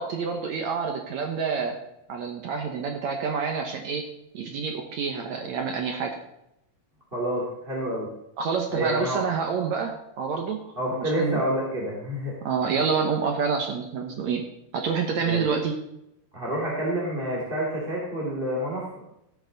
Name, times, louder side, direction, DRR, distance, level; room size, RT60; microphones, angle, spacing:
voice 1, 0.0-1.8 2.1-4.1 4.3-6.2 8.4-11.4 12.4-14.4 14.7-15.7, right 5 dB, 65° right, 3 dB, 2.0 m, -28 dB
voice 2, 7.1-8.1 8.7-9.2 10.7-12.3 15.2-15.5 16.3-18.9, equal, 15° right, -5 dB, 2.6 m, -28 dB
16.0 x 8.6 x 4.0 m, 0.83 s
omnidirectional pair, 4.0 m